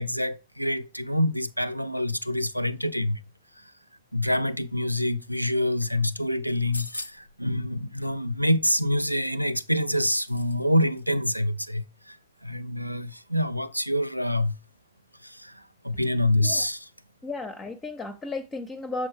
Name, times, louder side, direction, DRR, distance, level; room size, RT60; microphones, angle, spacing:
voice 1, 0.0-3.2 3.6-3.7 4.1-12.2 12.4-14.6 15.2-16.9, left 1 dB, 90° right, 0.3 m, -26 dB
sound 1, 6.5-7.4 8.9-10.6 10.9-11.0, left 2 dB, 85° left, 0.3 m, -41 dB
voice 2, 17.2-19.1, left 3 dB, 20° left, 0.5 m, -34 dB
6.9 x 4.2 x 3.4 m
figure-of-eight pair, 90°, 0 cm